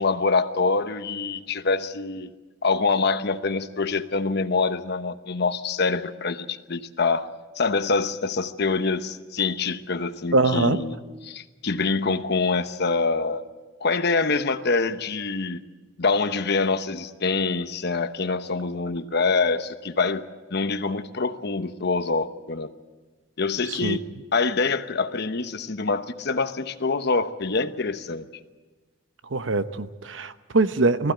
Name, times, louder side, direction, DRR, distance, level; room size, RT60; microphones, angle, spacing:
voice 1, 0.0-2.3 2.6-7.3 7.6-11.0 11.2-13.4 13.8-15.6 16.0-20.2 20.5-22.7 23.4-24.1 24.3-28.2, left 4 dB, 60° left, 10 dB, 1.0 m, -25 dB
voice 2, 10.3-10.8 23.8-24.0 29.3-31.1, right 3 dB, 80° right, 11 dB, 0.9 m, -22 dB
20.0 x 15.0 x 9.1 m, 1.3 s
head